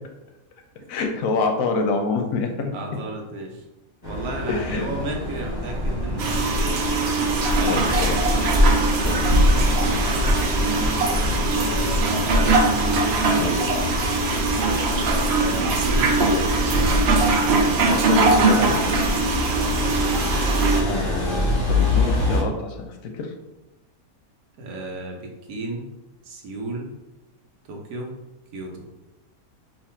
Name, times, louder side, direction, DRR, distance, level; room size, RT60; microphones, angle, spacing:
voice 1, 0.9-2.7 4.5-4.9 7.6-8.2 9.1-9.4 13.4-13.9 17.8-18.8 20.9-23.3, left 3 dB, 75° left, 3 dB, 1.0 m, -26 dB
voice 2, 2.7-3.6 4.0-6.9 7.3-8.2 11.5-12.6 15.3-16.5 19.5-19.8 24.6-25.8 26.2-26.9 27.6-28.1 28.5-28.9, right 2 dB, 80° right, 1 dB, 1.2 m, -34 dB
sound 1, 4.0-22.4, left 1 dB, 35° left, 0.7 m, -24 dB
sound 2, 6.2-20.8, right 3 dB, 65° right, 0.7 m, -22 dB
2.9 x 2.4 x 4.2 m, 0.99 s
omnidirectional pair, 1.6 m